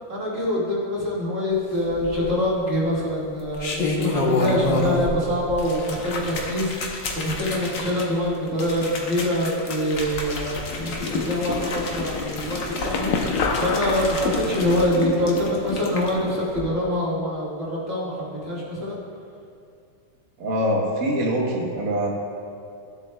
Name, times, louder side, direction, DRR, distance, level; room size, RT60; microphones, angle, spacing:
voice 1, 0.1-13.1 13.5-19.0, left 1 dB, 30° right, -7 dB, 1.8 m, -25 dB
sound 1, 1.9-2.5 3.3-5.2 5.5-16.1 16.5-16.6, left 2 dB, 70° left, 1.0 m, -29 dB
sound 2, 10.7-16.4, left 4 dB, 85° left, 2.1 m, -29 dB
voice 2, 20.4-22.1, equal, 65° right, -2 dB, 0.8 m, -24 dB
15.5 x 7.4 x 2.3 m, 2.4 s
omnidirectional pair, 3.3 m